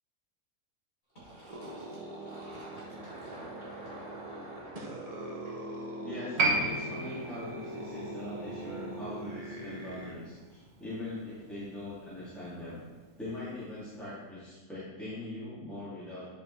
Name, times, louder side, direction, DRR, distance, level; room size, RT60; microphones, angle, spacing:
Fill (with liquid), 1.2-6.6, right 1 dB, 30° left, 2.5 m, -48 dB
sound 1, 1.5-10.1, right 1 dB, 30° right, 0.8 m, -42 dB
voice 1, 6.0-12.8 13.2-16.3, left 2 dB, ahead, -12 dB, 2.3 m, -41 dB
Piano, 6.4-13.3 13.6-13.7, right 2 dB, 60° right, 1.4 m, -35 dB
9.6 x 5.2 x 3.2 m, 1.3 s
omnidirectional pair, 1.5 m